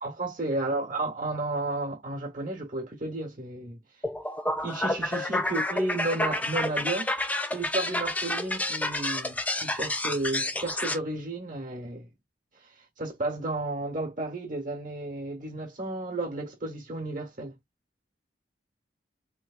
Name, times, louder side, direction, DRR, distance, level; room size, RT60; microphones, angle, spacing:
voice 1, 0.0-3.8 4.6-7.1 7.5-12.1 12.6-17.5, right 2 dB, 45° right, 1.1 m, -32 dB
sound 1, 4.0-11.0, left 1 dB, 10° left, 0.4 m, -29 dB
3.4 x 3.1 x 2.4 m
head